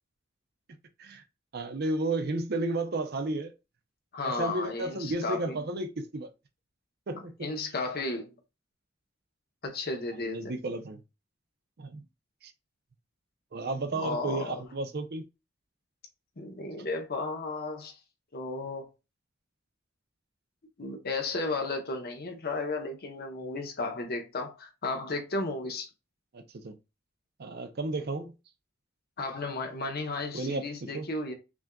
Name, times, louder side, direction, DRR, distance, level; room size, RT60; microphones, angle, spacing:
voice 1, 1.5-3.5 4.2-6.3 7.1-7.5 10.3-11.0 11.8-12.0 12.4-12.5 13.5-15.2 26.3-26.8 27.4-28.3 30.3-31.1, right 2 dB, 55° right, 0.6 m, -33 dB
voice 2, 4.1-5.6 7.4-8.3 9.6-10.5 13.9-14.6 16.4-18.0 18.3-18.9 20.8-25.9 29.2-31.3, left 3 dB, 55° left, 0.9 m, -34 dB
5.9 x 2.5 x 2.3 m
head